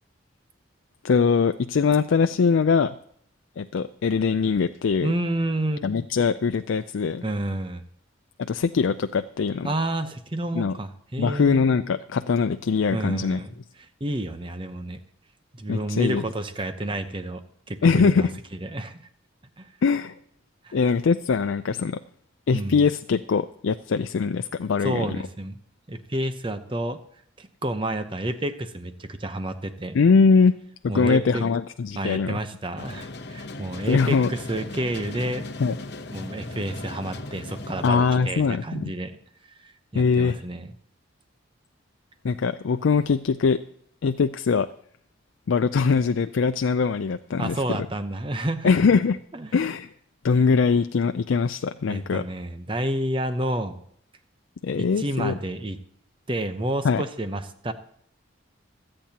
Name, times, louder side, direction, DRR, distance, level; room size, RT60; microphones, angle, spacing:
voice 1, 1.0-2.9 3.6-5.1 5.8-7.2 8.4-9.7 10.5-10.8 11.2-13.4 15.7-16.2 17.8-18.3 19.8-20.1 20.7-22.0 22.5-25.1 29.9-30.6 30.8-32.4 33.9-34.3 35.6-35.8 37.8-38.6 39.9-40.4 42.2-43.6 44.0-44.7 45.5-47.6 48.6-49.2 49.5-49.9 50.2-52.2 54.6-55.3 56.8-57.0, left 5 dB, 75° left, 9 dB, 0.4 m, -22 dB
voice 2, 5.0-5.9 7.2-7.8 9.6-11.7 12.9-15.0 15.5-17.4 17.7-18.3 18.6-19.0 19.6-19.7 20.6-20.8 22.5-22.8 24.8-25.6 25.9-27.0 27.4-30.0 30.9-31.4 32.0-35.5 36.1-39.2 39.5-40.7 47.4-48.7 49.3-49.5 51.9-53.8 54.8-55.8 56.3-57.7, right 1 dB, 25° right, 9 dB, 0.8 m, -30 dB
sound 1, 32.8-37.9, left 2 dB, 55° left, 0.9 m, -37 dB
25.5 x 8.8 x 2.9 m, 0.65 s
head